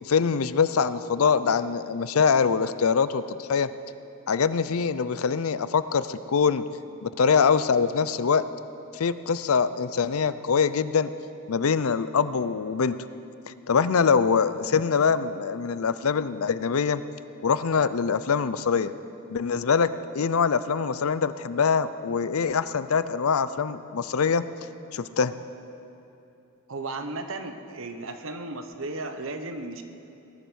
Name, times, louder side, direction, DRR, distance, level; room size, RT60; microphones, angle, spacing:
voice 1, 0.0-3.7 4.3-6.6 7.0-8.5 8.9-11.1 11.5-13.0 13.5-17.0 17.4-18.9 19.3-24.4 24.9-25.3, left 6 dB, 80° left, 14 dB, 0.5 m, -24 dB
voice 2, 26.7-29.8, right 2 dB, 65° right, 7 dB, 1.0 m, -35 dB
18.5 x 11.5 x 6.4 m, 2.9 s
head